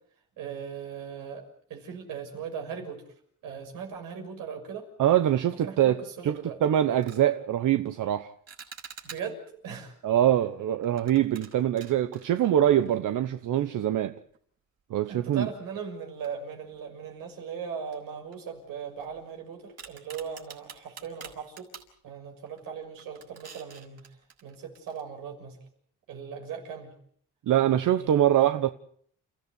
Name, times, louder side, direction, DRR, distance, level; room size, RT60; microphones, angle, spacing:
voice 1, 0.4-1.4 1.7-3.0 3.4-4.9 5.6-6.6 9.0-9.9 15.1-21.7 22.0-25.6 26.1-26.9 27.6-28.3, right 6 dB, 90° right, 6.5 m, -39 dB
voice 2, 5.0-6.0 6.2-8.3 10.0-14.1 14.9-15.5 27.5-28.7, right 11 dB, 70° right, 1.1 m, -24 dB
sound 1, 6.2-6.4 6.9-7.3 8.5-9.5 10.8-13.2 13.5-13.6 14.3-14.4 16.2-16.9 17.2-17.3 17.9-19.3 19.8-21.9 22.5-22.7 23.0-25.0, right 6 dB, 50° right, 5.6 m, -48 dB
30.0 x 15.0 x 8.4 m
cardioid pair, 90°, 32 cm